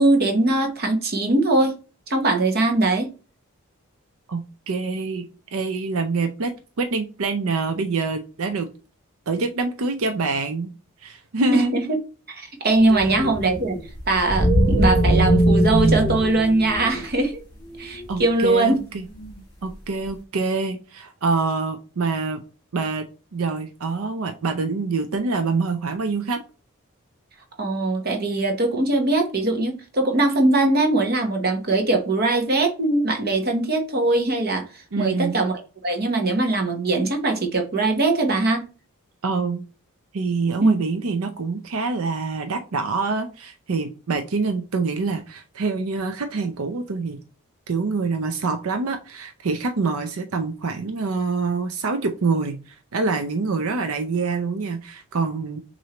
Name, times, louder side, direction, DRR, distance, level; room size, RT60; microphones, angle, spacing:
voice 1, 0.0-1.8 2.1-3.1 11.5-12.0 12.3-13.8 14.1-17.4 17.8-18.8 27.6-38.7 40.6-40.8, right 2 dB, 45° right, 1.0 m, -21 dB
voice 2, 4.3-8.7 9.3-10.7 11.0-11.7 12.9-13.1 18.1-19.0 19.6-22.4 22.7-23.0 23.3-26.4 34.9-35.4 39.2-39.6 40.1-47.2 47.7-55.6, right 4 dB, 75° right, 0.6 m, -26 dB
sound 1, 12.7-17.1 17.7-19.4, right 1 dB, 20° left, 2.2 m, -21 dB
6.3 x 2.7 x 2.9 m
head